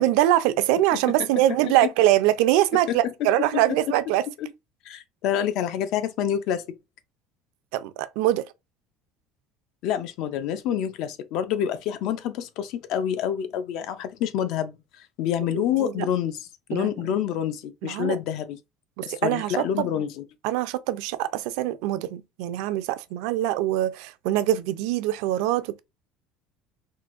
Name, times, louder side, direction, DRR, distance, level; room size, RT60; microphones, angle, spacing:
voice 1, 0.0-4.2 7.7-8.5 15.5-15.9 16.7-16.9 17.8-18.2 19.0-19.9 20.4-25.8, right 14 dB, 70° right, 0.4 m, -23 dB
voice 2, 0.9-1.3 2.9-3.5 4.4-4.5 4.8-6.8 9.8-18.6 19.0-20.2, left 9 dB, 50° left, 0.4 m, -28 dB
3.7 x 2.5 x 2.4 m
cardioid pair, 175°, 0 cm